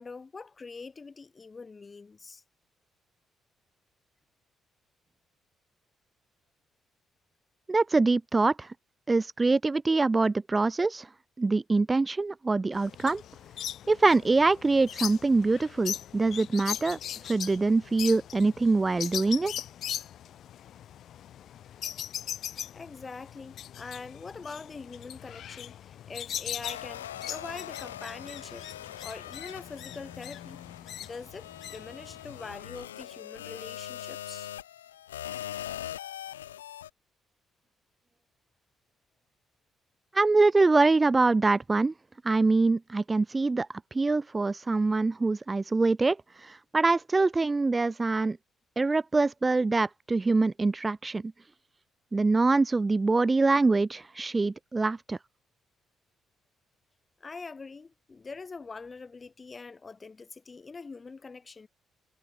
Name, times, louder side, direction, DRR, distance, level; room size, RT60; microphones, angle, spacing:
voice 1, 0.0-2.4 22.7-28.7 29.0-30.6 31.0-34.5 57.2-61.7, left 4 dB, 35° left, 2.6 m, -43 dB
voice 2, 7.7-8.7 9.1-11.1 11.4-13.2 13.9-17.0 17.3-19.5 40.1-41.9 42.2-43.7 43.9-48.4 48.8-51.3 52.1-55.2, right 3 dB, 25° right, 0.6 m, -24 dB
sound 1, 12.7-32.5, left 11 dB, 60° left, 3.5 m, -40 dB
sound 2, 26.6-36.9, left 12 dB, 90° left, 2.3 m, -42 dB
hypercardioid pair, 45°, 0 cm